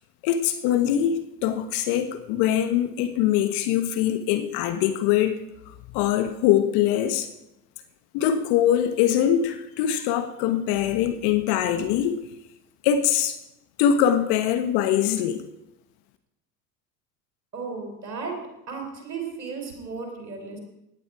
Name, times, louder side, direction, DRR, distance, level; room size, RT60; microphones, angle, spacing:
voice 1, 0.2-5.3 5.7-7.3 8.1-12.2 12.8-13.4 13.8-15.4, left 10 dB, 55° left, 1.3 m, -23 dB
voice 2, 17.5-18.4 18.7-20.6, right 5 dB, 90° right, 3.8 m, -34 dB
17.0 x 11.0 x 4.9 m
hypercardioid pair, 75°, 48 cm